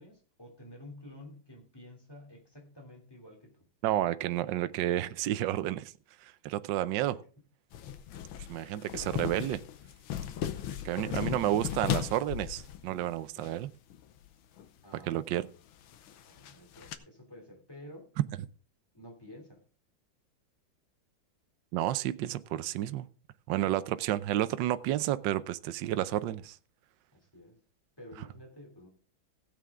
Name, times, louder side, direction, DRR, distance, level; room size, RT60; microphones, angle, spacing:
voice 1, 0.0-3.7 7.0-7.2 8.3-9.1 11.1-11.3 14.8-15.3 16.3-18.1 18.9-19.6 27.1-27.6 28.0-28.9, left 1 dB, 10° left, 2 dB, 3.1 m, -51 dB
voice 2, 3.8-5.9 6.2-7.1 8.5-9.6 10.8-13.7 15.1-15.5 21.7-23.1 23.5-26.6, right 13 dB, 70° right, 13 dB, 1.3 m, -31 dB
sound 1, 7.7-13.5 13.9-14.3 14.6-14.7 15.4-17.0, left 10 dB, 90° left, 1.7 m, -37 dB
16.0 x 8.5 x 3.7 m, 0.41 s
omnidirectional pair, 2.2 m